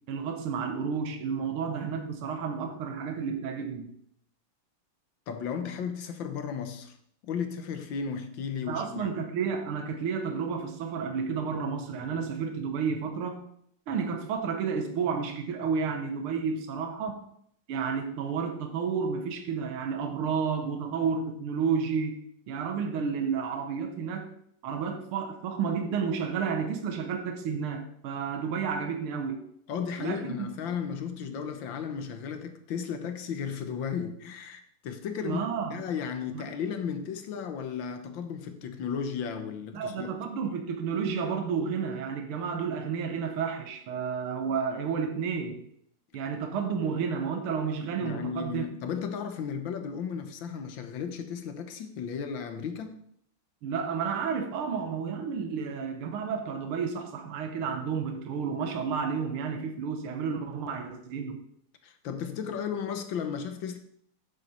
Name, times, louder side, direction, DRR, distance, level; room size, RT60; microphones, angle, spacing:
voice 1, 0.1-3.9 8.7-13.4 13.9-17.2 17.7-22.2 22.5-24.3 24.6-29.4 30.0-30.5 35.2-35.8 36.3-36.4 39.7-45.6 46.1-48.7 53.6-61.4, right 6 dB, 75° right, 2.0 m, -31 dB
voice 2, 5.3-7.0 7.2-9.1 29.7-35.4 35.7-40.1 48.0-53.0 61.8-63.8, left 7 dB, 65° left, 1.5 m, -34 dB
9.4 x 7.6 x 4.3 m
omnidirectional pair, 2.4 m